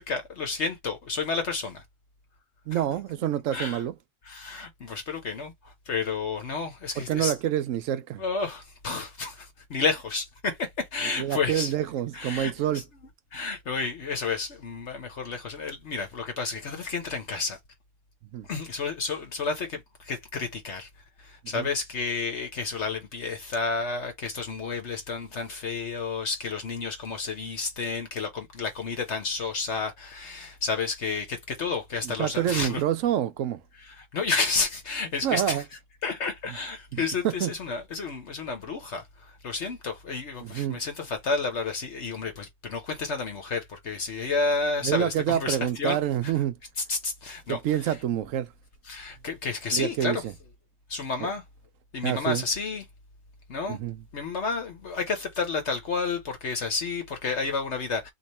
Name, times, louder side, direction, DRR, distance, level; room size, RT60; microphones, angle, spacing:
voice 1, 0.0-1.8 3.5-3.8 4.3-7.3 8.2-11.7 12.1-12.8 13.3-17.6 18.5-20.9 21.2-32.8 33.9-35.6 36.0-46.0 46.2-46.3 46.9-48.0 48.9-50.2 50.9-51.4 51.9-52.8 53.5-53.8 54.1-58.1, left 4 dB, 65° left, 1.2 m, -31 dB
voice 2, 2.7-3.9 7.0-8.2 11.2-12.8 18.3-18.5 21.5-21.7 32.0-33.6 35.2-35.6 36.9-37.5 40.4-40.8 44.8-46.6 47.5-48.5 49.7-50.3 51.2-51.3 52.0-52.4 53.7-54.0, right 11 dB, 90° right, 1.0 m, -27 dB
3.2 x 3.0 x 4.2 m
omnidirectional pair, 1.3 m